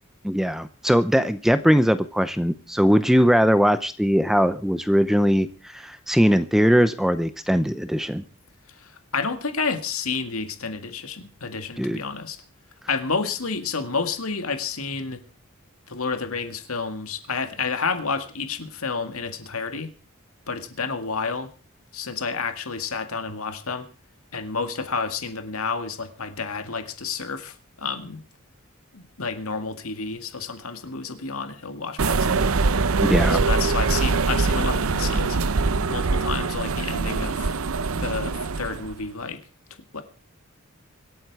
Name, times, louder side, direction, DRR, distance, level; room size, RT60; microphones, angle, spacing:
voice 1, 0.2-8.2 11.8-12.0 33.0-33.4, equal, ahead, 12 dB, 0.6 m, -20 dB
voice 2, 8.8-12.4 12.9-15.2 15.9-19.9 20.5-21.5 21.9-23.9 24.3-28.2 28.9-32.5 33.3-35.4 35.9-37.5 38.0-39.4 39.9-40.0, left 4 dB, 85° left, 8 dB, 2.0 m, -30 dB
sound 1, 32.0-38.9, right 4 dB, 80° right, 0.7 m, -23 dB
25.0 x 8.8 x 4.7 m, 0.36 s
head